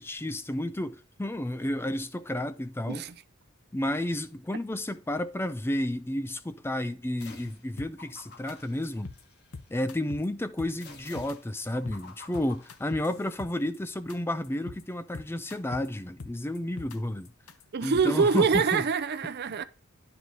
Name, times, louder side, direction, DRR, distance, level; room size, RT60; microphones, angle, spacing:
voice 1, 0.0-3.0 3.7-9.1 9.7-17.3 17.8-18.8, left 1 dB, 10° left, 0.5 m, -31 dB
sound 1, 7.2-7.7 8.0-9.7 10.8-13.4, left 4 dB, 55° left, 1.8 m, -51 dB
sound 2, 7.8-8.2 8.5-8.6 8.8-9.2 9.5-10.3 10.6-11.4 11.6-12.0 12.3-13.8 14.1-14.2 14.4-14.8 15.1-15.9 16.2-17.0 17.3-18.8, left 3 dB, 85° left, 0.9 m, -43 dB
voice 2, 17.7-19.6, right 5 dB, 50° right, 0.5 m, -25 dB
10.5 x 4.9 x 3.9 m
head